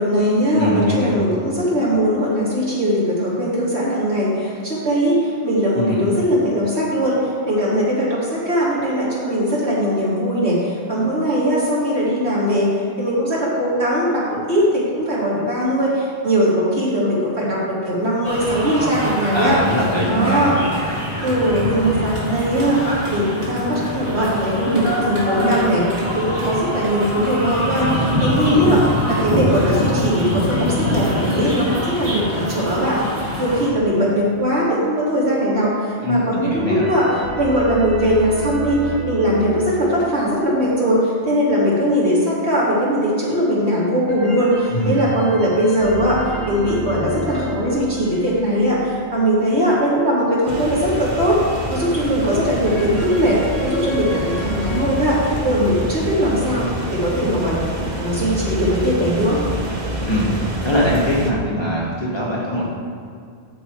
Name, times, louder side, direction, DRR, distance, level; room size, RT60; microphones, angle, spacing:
voice 1, 0.0-12.7 13.0-19.6 20.1-20.6 21.0-28.8 29.1-37.1 37.4-56.6 56.9-57.6 58.0-59.4, equal, 85° right, -7 dB, 2.9 m, -20 dB
voice 2, 0.5-1.2 5.7-6.1 19.3-20.6 36.0-36.9 44.7-45.1 60.0-60.4 60.6-62.7, equal, 25° left, -6 dB, 1.8 m, -21 dB
Peoples Square Gardeners, 18.2-33.7, left 1 dB, 30° right, 2.2 m, -24 dB
sound 1, 36.8-41.4 44.1-50.1 52.7-54.8, right 1 dB, 65° right, 2.6 m, -31 dB
sound 2, 50.5-61.3, right 1 dB, 45° right, 1.1 m, -27 dB
9.8 x 7.0 x 4.7 m, 2.3 s
omnidirectional pair, 1.1 m